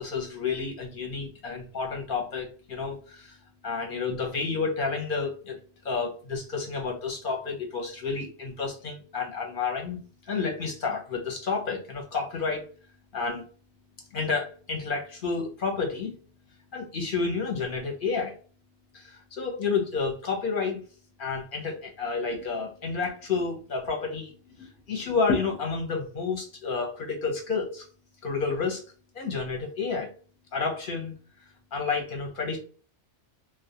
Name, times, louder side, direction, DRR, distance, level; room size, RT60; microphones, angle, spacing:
voice 1, 0.0-3.4 3.6-5.6 5.8-10.0 10.3-12.7 13.1-13.5 14.1-16.1 16.7-18.3 18.9-20.8 21.2-27.8 28.2-28.8 29.1-30.1 30.5-31.1 31.7-32.6, left 4 dB, 55° left, 1 dB, 0.7 m, -30 dB
2.2 x 2.1 x 2.7 m, 0.40 s
omnidirectional pair, 1.2 m